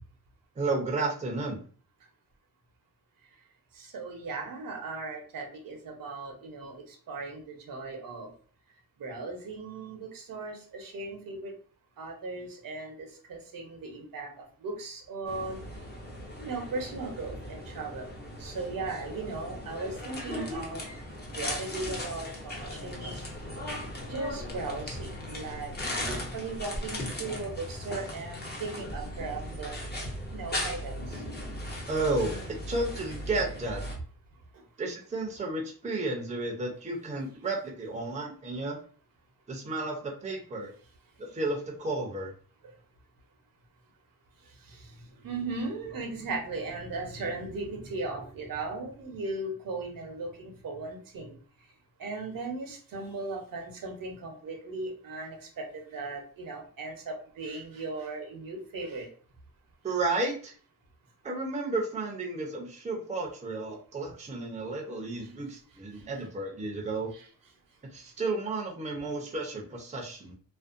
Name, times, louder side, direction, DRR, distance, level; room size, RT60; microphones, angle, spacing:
voice 1, 0.6-1.6 31.9-32.3 32.7-33.8 34.8-38.8 39.5-40.7 41.2-42.3 59.8-60.5 61.2-67.1 67.9-70.3, right 2 dB, 20° right, 0 dB, 0.5 m, -32 dB
voice 2, 3.8-8.3 9.0-11.5 12.0-15.6 16.4-18.1 18.4-20.8 21.3-23.2 24.1-25.7 26.1-29.9 30.3-31.2 44.6-44.9 45.2-51.4 52.0-59.1 65.2-65.3 67.1-67.3, right 3 dB, 65° right, 2 dB, 0.7 m, -37 dB
sound 1, 15.3-34.0, left 1 dB, 30° left, 0.7 m, -38 dB
2.5 x 2.1 x 2.4 m, 0.43 s
cardioid pair, 115°, 36 cm